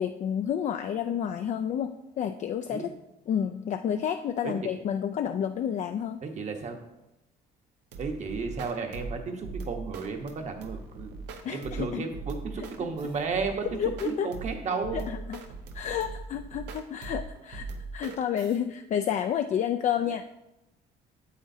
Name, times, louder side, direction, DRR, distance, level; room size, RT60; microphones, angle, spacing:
voice 1, 0.0-2.9 3.3-6.2 11.4-12.1 12.6-12.7 13.8-14.3 14.7-15.4 15.7-20.2, left 9 dB, 45° left, 7 dB, 0.4 m, -30 dB
voice 2, 6.2-6.8 8.0-11.1 11.5-13.6 14.0-15.1, right 5 dB, 45° right, 4 dB, 1.1 m, -33 dB
sound 1, 7.9-18.6, right 3 dB, 90° right, 0.8 m, -40 dB
8.3 x 7.8 x 2.7 m, 0.92 s
cardioid pair, 110°, 17 cm